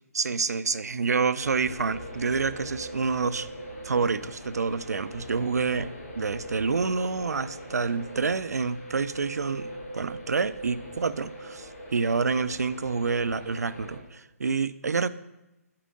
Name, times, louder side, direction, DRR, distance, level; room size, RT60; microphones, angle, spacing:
voice 1, 0.1-3.5 3.8-5.9 6.2-15.1, right 4 dB, 85° right, 15 dB, 0.4 m, -28 dB
sound 1, 1.4-14.0, equal, 80° left, 2.7 m, -42 dB
8.4 x 5.0 x 3.7 m, 0.96 s
figure-of-eight pair, 145°, 9 cm